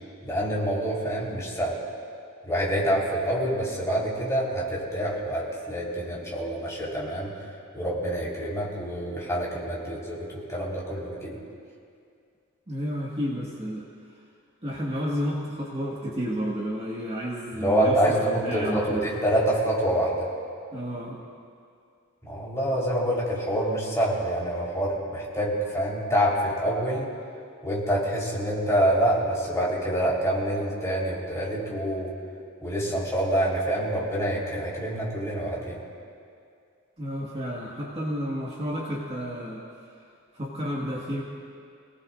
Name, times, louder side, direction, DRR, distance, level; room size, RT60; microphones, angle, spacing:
voice 1, 0.2-1.8 2.4-7.3 7.7-11.4 17.5-20.3 22.2-27.1 27.6-32.1 32.6-35.8, right 1 dB, 15° left, -6 dB, 4.0 m, -26 dB
voice 2, 12.7-13.8 14.6-19.0 20.7-21.2 37.0-39.6 40.3-41.2, equal, 30° right, -5 dB, 1.8 m, -31 dB
28.0 x 18.5 x 2.6 m, 2.4 s
head